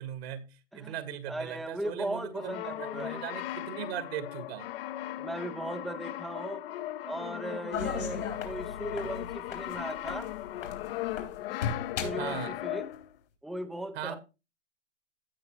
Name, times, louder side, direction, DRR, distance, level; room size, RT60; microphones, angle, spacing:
voice 1, 0.0-4.7 12.2-12.5 14.0-14.2, right 10 dB, 55° right, 10 dB, 1.7 m, -39 dB
voice 2, 1.3-3.4 5.2-6.6 7.1-10.3 12.0-12.9 13.4-14.1, right 1 dB, ahead, 9 dB, 0.5 m, -37 dB
Brass instrument, 2.3-13.2, left 14 dB, 55° left, 0.7 m, -38 dB
sound 1, 7.7-11.4 11.6-12.3 12.9-13.0, left 6 dB, 85° left, 3.8 m, -36 dB
16.0 x 5.4 x 3.0 m, 0.28 s
hypercardioid pair, 135°, 37 cm